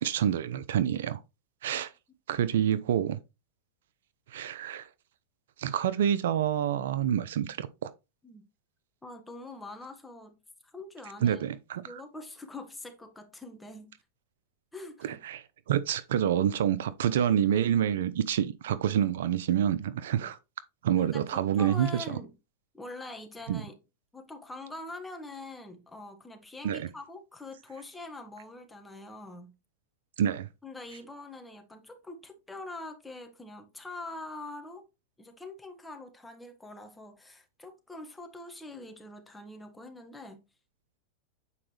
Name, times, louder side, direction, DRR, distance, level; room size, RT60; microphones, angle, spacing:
voice 1, 0.0-1.2 1.6-1.9 2.3-3.2 4.3-4.9 5.6-7.9 11.2-12.0 15.0-20.4 20.8-22.2 23.5-23.6 26.6-26.9 30.2-30.5, right 10 dB, 75° right, 0.7 m, -27 dB
voice 2, 9.0-10.4 10.6-11.4 11.8-13.9 14.7-15.1 20.2-20.3 21.0-22.3 22.7-23.8 24.1-29.6 30.6-34.9 35.2-40.4, left 2 dB, 10° left, 1.7 m, -44 dB
8.4 x 4.9 x 3.3 m
hypercardioid pair, 110°, 0 cm